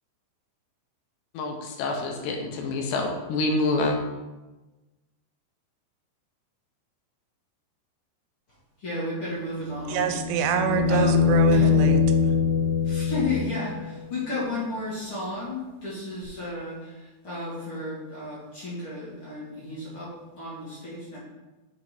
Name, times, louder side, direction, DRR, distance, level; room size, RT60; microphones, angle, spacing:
voice 1, 1.3-4.0, left 2 dB, 75° left, 2.9 m, -27 dB
voice 2, 8.8-10.1 10.9-11.7 12.8-21.2, left 2 dB, 40° left, 2.1 m, -33 dB
sound 1, 9.7-13.8 16.2-16.3, left 6 dB, 45° right, 1.3 m, -23 dB
voice 3, 9.9-12.0, right 9 dB, 90° right, 3.0 m, -26 dB
7.1 x 5.0 x 4.8 m
omnidirectional pair, 5.3 m